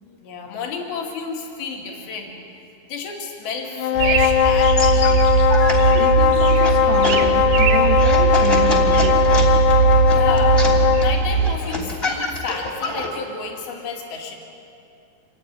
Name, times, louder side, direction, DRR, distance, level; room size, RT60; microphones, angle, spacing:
voice 1, 0.0-2.3 2.9-5.3 10.1-14.3, left 5 dB, 70° left, 1 dB, 4.1 m, -31 dB
sound 1, 3.7-11.2, left 9 dB, 85° left, 1.7 m, -18 dB
sound 2, 4.0-11.5, right 7 dB, 65° right, 2.6 m, -19 dB
sound 3, 4.8-13.1, left 2 dB, 15° left, 2.6 m, -28 dB
voice 2, 5.9-9.5, right 8 dB, 85° right, 7 dB, 3.3 m, -28 dB
26.5 x 14.5 x 9.6 m, 2.6 s
omnidirectional pair, 4.7 m